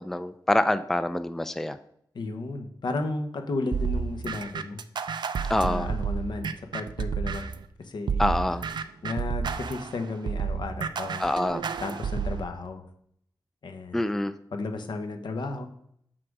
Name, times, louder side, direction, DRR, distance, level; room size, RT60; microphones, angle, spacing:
voice 1, 0.0-1.8 5.5-5.9 8.2-8.6 11.2-11.6 13.9-14.3, left 1 dB, 5° left, 12 dB, 0.3 m, -26 dB
voice 2, 2.1-4.8 5.6-7.5 7.8-8.2 9.0-11.3 11.8-12.8 13.6-14.0 14.5-15.7, left 3 dB, 80° left, 6 dB, 1.0 m, -33 dB
sound 1, 3.7-7.6 8.1-12.4, right 6 dB, 75° right, 0.5 m, -30 dB
6.4 x 5.9 x 4.7 m, 0.69 s
wide cardioid pair, 120°, 8 cm